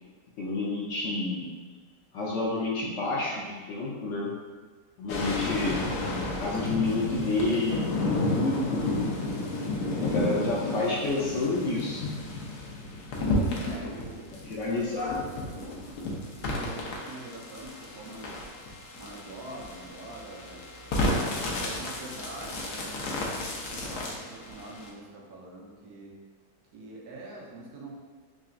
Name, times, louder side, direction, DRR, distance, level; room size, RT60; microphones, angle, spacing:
voice 1, 0.4-1.5 2.1-4.4 5.0-9.0 9.9-12.0 13.7-13.8 14.5-15.1, left 3 dB, 65° left, -4 dB, 0.8 m, -29 dB
sound 1, 5.1-24.9, left 2 dB, 85° left, 1.2 m, -32 dB
voice 2, 13.5-14.3 14.7-14.9 15.2-15.6 16.4-18.4 18.9-23.3 23.7-26.2 26.7-28.0, right 2 dB, 80° right, -3 dB, 1.2 m, -45 dB
3.8 x 3.2 x 2.5 m, 1.4 s
omnidirectional pair, 1.6 m